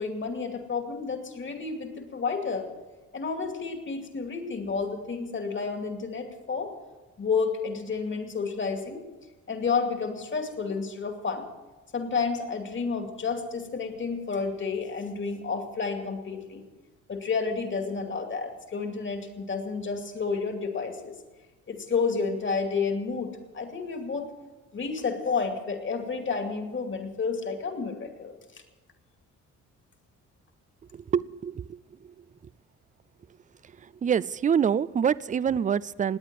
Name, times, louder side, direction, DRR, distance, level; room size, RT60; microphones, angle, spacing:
voice 1, 0.0-2.7 3.1-6.7 7.2-9.0 9.5-11.5 11.9-16.7 17.1-21.2 21.7-24.3 24.7-28.3, left 5 dB, 40° left, 5 dB, 2.5 m, -30 dB
voice 2, 30.9-32.2 33.8-36.2, right 7 dB, 25° right, 20 dB, 0.4 m, -26 dB
19.5 x 8.8 x 7.6 m, 1.3 s
cardioid pair, 90°, 30 cm